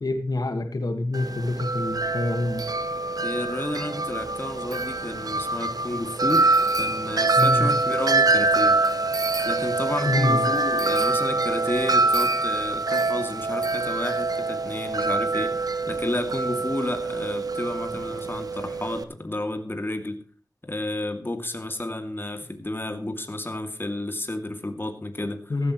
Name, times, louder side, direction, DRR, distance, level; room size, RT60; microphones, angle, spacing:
voice 1, 0.0-2.7 7.4-7.7 10.1-10.5 25.5-25.7, left 2 dB, 85° left, 6 dB, 1.7 m, -26 dB
Wind chime, 1.1-19.0, right 3 dB, 75° right, 1.0 m, -25 dB
voice 2, 3.2-6.5 6.8-8.8 9.4-20.2 20.6-25.5, left 1 dB, 35° left, 6 dB, 2.5 m, -31 dB
15.5 x 14.0 x 3.1 m, 0.40 s
wide cardioid pair, 60°, 6 cm